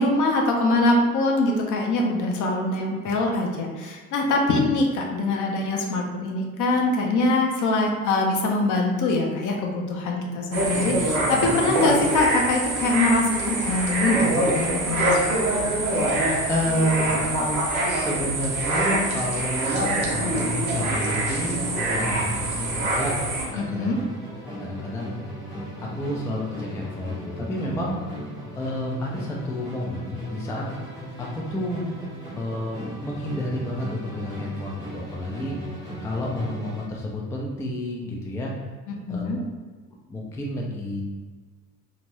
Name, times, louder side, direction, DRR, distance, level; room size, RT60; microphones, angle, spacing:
voice 1, 0.0-15.1 15.5-15.6 23.5-24.0 38.9-39.4, left 2 dB, 45° left, 0 dB, 0.7 m, -23 dB
sound 1, 10.5-23.5, right 1 dB, 70° right, 0.8 m, -25 dB
voice 2, 16.5-23.1 23.5-23.9 24.6-25.1 25.8-28.0 28.5-30.6 31.2-31.9 32.3-35.6 36.0-38.5 39.1-39.2 40.1-41.0, left 1 dB, 5° left, -2 dB, 0.3 m, -30 dB
Musical instrument, 20.3-37.0, equal, 90° left, 1.2 m, -37 dB
2.7 x 2.5 x 3.1 m, 1.4 s
figure-of-eight pair, 50°, 44 cm